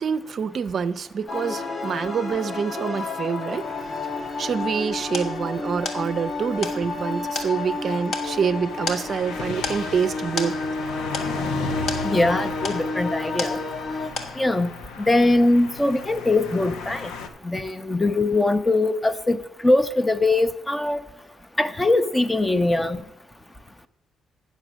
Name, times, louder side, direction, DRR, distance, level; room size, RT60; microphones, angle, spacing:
voice 1, 0.0-4.1 4.4-10.6, right 6 dB, 50° right, 12 dB, 0.4 m, -26 dB
sound 1, 1.3-14.1, left 3 dB, 45° left, 1.0 m, -31 dB
sound 2, 3.5-17.3, left 4 dB, 90° left, 0.8 m, -37 dB
sound 3, 4.5-13.9 14.2-14.7, left 4 dB, 70° left, 1.4 m, -34 dB
voice 2, 12.0-13.6 14.4-14.7 15.0-17.1 17.4-21.0 21.6-23.0, left 2 dB, 15° left, 12 dB, 0.5 m, -21 dB
8.9 x 6.6 x 6.2 m, 0.90 s
cardioid pair, 90°, 0 cm